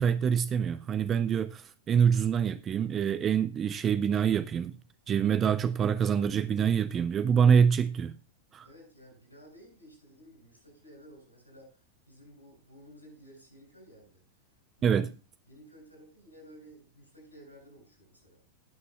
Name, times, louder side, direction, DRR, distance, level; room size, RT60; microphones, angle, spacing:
voice 1, 0.0-4.8 5.1-8.2 8.5-8.7 14.8-15.1, right 7 dB, 25° right, 0.5 m, -25 dB
voice 2, 8.6-14.4 14.8-15.0 15.5-18.4, equal, 90° right, 6.6 m, -54 dB
19.5 x 6.7 x 2.4 m
figure-of-eight pair, 90°, 0 cm